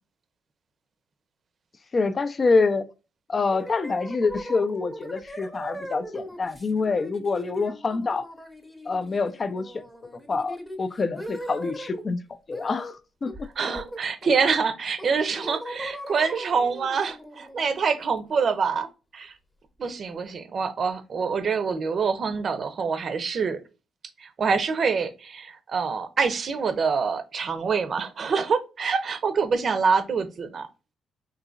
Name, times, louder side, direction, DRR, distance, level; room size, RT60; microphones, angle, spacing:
voice 1, 1.9-2.9 3.3-8.2 8.9-9.8 10.3-13.5, left 4 dB, 35° left, 0.4 m, -26 dB
sound 1, 3.5-12.0 12.5-13.0 13.3-14.5 15.0-18.7, equal, 5° left, 0.8 m, -40 dB
voice 2, 13.6-18.9 19.1-19.3 19.8-23.6 24.2-30.7, right 5 dB, 50° right, 0.6 m, -26 dB
3.9 x 2.8 x 2.4 m
cardioid pair, 90°, 0 cm